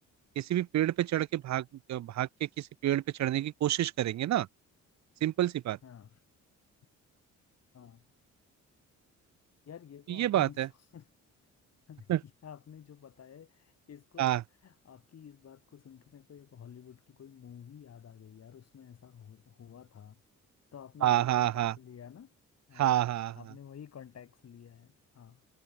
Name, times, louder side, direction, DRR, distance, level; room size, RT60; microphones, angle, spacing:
voice 1, 0.4-4.5 5.2-5.8 10.1-10.7 12.1-12.2 14.2-14.4 21.0-21.7 22.8-23.4, right 13 dB, 65° right, 1.0 m, -28 dB
voice 2, 5.8-6.2 7.7-8.1 9.7-10.6 10.9-11.1 11.9-14.3 14.6-20.2 20.7-22.3 22.7-23.0 23.4-25.4, left 8 dB, 55° left, 7.6 m, -51 dB
cardioid pair, 90°, 30 cm